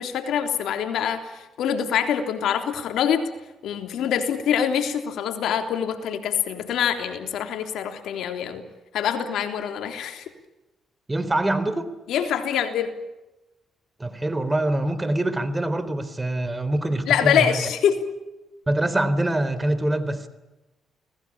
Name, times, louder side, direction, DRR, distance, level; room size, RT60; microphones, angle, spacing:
voice 1, 0.0-3.3 3.6-8.6 8.9-10.2 12.1-13.0 17.1-18.1, left 8 dB, 80° left, 6 dB, 3.5 m, -25 dB
voice 2, 11.1-11.9 14.0-17.6 18.7-20.3, right 1 dB, 20° right, 13 dB, 3.9 m, -24 dB
29.5 x 19.5 x 8.8 m, 1.0 s
cardioid pair, 75°, 0 cm